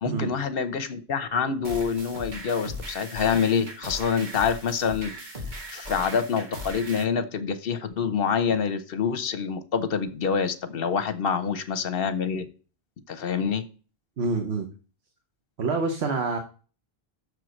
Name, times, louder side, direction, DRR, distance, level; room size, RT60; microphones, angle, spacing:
voice 1, 0.0-5.3 5.7-12.5 13.1-13.6, left 6 dB, 65° left, 11 dB, 1.0 m, -26 dB
sound 1, 1.6-7.0, equal, 45° right, 1.5 m, -38 dB
voice 2, 14.2-14.7 15.6-16.4, right 4 dB, 90° right, 4 dB, 1.2 m, -26 dB
6.5 x 4.6 x 6.3 m, 0.37 s
omnidirectional pair, 1.0 m